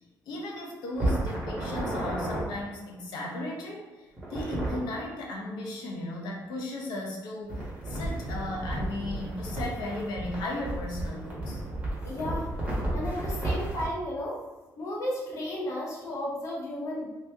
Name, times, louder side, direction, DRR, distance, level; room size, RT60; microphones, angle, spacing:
voice 1, 0.3-11.6, left 1 dB, 90° left, -1 dB, 0.8 m, -36 dB
sound 1, 0.9-2.4 4.2-4.8 7.5-13.9, right 1 dB, 20° right, 1.1 m, -32 dB
voice 2, 12.0-12.5 12.9-14.4 14.8-17.1, left 1 dB, 45° left, -4 dB, 0.9 m, -33 dB
3.0 x 2.8 x 3.4 m, 1.2 s
cardioid pair, 160°, 7 cm